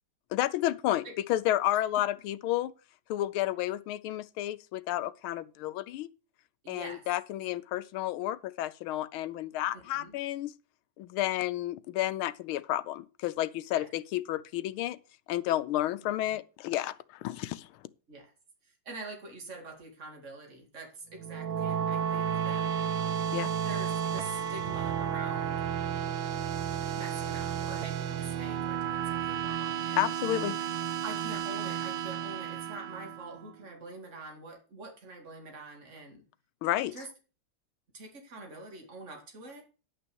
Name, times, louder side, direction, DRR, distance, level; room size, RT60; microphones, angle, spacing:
voice 1, 0.3-2.7 3.1-6.1 6.7-10.5 11.0-15.0 15.3-17.7 23.3-23.5 30.0-30.6 36.6-36.9, left 14 dB, 90° left, 1.5 m, -31 dB
voice 2, 6.6-7.0 9.7-10.2 13.7-13.9 16.2-16.3 18.1-18.3 18.6-22.7 23.6-25.7 26.8-30.4 31.0-36.2 36.9-37.1 37.9-39.6, right 2 dB, 35° right, 2.7 m, -45 dB
sound 1, 21.1-33.5, right 9 dB, 80° right, 1.7 m, -32 dB
10.0 x 6.1 x 6.1 m
omnidirectional pair, 2.2 m